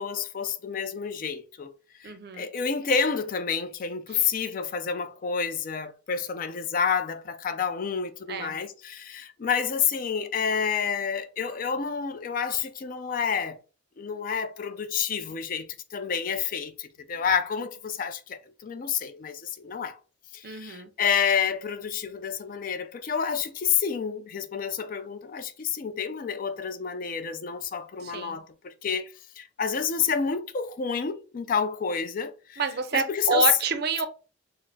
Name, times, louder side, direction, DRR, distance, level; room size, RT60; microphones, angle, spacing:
voice 1, 0.0-1.7 2.0-13.6 14.0-20.0 20.3-32.6 32.9-33.5, left 6 dB, 45° left, 0.4 m, -29 dB
voice 2, 2.0-2.5 4.1-4.3 8.3-8.6 20.4-20.9 28.0-28.4 32.6-34.1, right 4 dB, 55° right, 0.4 m, -28 dB
4.0 x 2.0 x 2.6 m
head